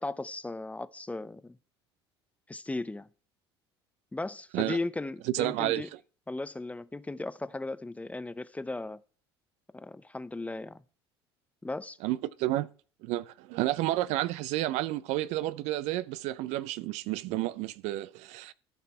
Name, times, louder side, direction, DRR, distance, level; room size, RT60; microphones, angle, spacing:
voice 1, 0.0-1.6 2.5-3.1 4.1-5.9 6.3-9.0 9.7-10.8 11.6-12.0, left 2 dB, 10° left, 0.6 m, -36 dB
voice 2, 5.2-5.9 12.0-12.7 13.0-18.5, right 15 dB, 55° right, 0.5 m, -31 dB
13.5 x 5.8 x 4.3 m
figure-of-eight pair, 65°, 14 cm